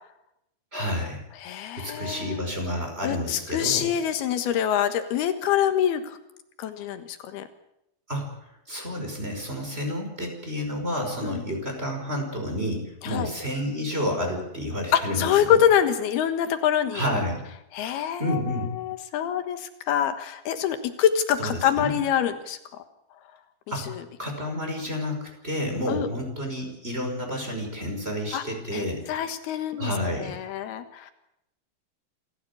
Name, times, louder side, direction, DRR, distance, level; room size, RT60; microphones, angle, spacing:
voice 1, 0.7-1.2 1.8-3.9 8.1-8.3 8.7-15.6 16.9-17.4 18.2-18.8 21.4-22.0 23.7-23.9 24.2-29.1 29.8-30.3, equal, 15° right, 3 dB, 5.5 m, -30 dB
voice 2, 1.4-2.4 3.0-6.2 6.6-7.5 11.2-11.4 13.0-13.3 14.9-17.1 17.7-22.6 24.0-24.1 25.9-26.1 28.3-28.4 28.7-29.9 30.2-31.1, left 9 dB, 85° left, 8 dB, 3.5 m, -25 dB
27.5 x 15.0 x 8.5 m, 0.84 s
omnidirectional pair, 4.4 m